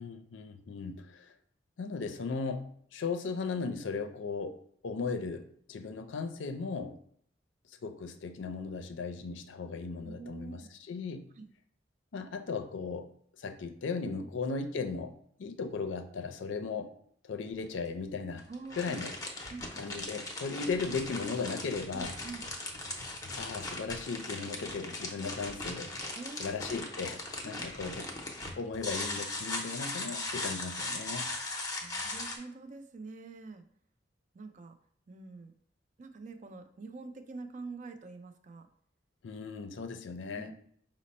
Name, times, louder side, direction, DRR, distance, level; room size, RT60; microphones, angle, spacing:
voice 1, 0.0-1.3 1.8-4.6 4.8-7.0 7.7-11.3 12.1-13.1 13.4-16.9 17.2-18.5 18.7-19.1 19.8-22.1 23.4-25.9 26.4-28.1 28.5-31.3 39.2-40.5, left 4 dB, 75° left, 8 dB, 0.4 m, -37 dB
voice 2, 10.0-10.7 11.4-11.5 14.1-14.3 18.5-19.0 19.5-19.7 21.9-22.4 26.1-26.8 27.4-27.7 31.8-33.6 34.3-34.8 35.1-35.5 36.0-38.7 40.4-40.5, right 3 dB, 40° right, 7 dB, 0.4 m, -45 dB
sound 1, 17.5-17.6 18.4-32.4, left 2 dB, 20° left, 0.6 m, -39 dB
5.0 x 2.0 x 4.1 m, 0.62 s
head